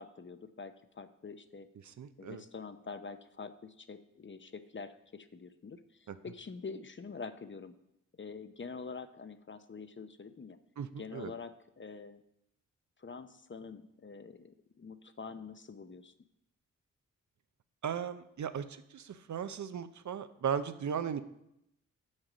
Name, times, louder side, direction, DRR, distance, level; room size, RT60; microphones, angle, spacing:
voice 1, 0.0-1.7 2.2-7.7 8.2-10.6 11.0-12.2 13.0-16.1, left 4 dB, 35° left, 10 dB, 0.7 m, -46 dB
voice 2, 1.8-2.4 6.1-6.2 10.8-11.3 17.8-21.2, right 8 dB, 60° right, 11 dB, 0.7 m, -37 dB
7.1 x 6.5 x 5.1 m, 0.82 s
cardioid pair, 50°, 33 cm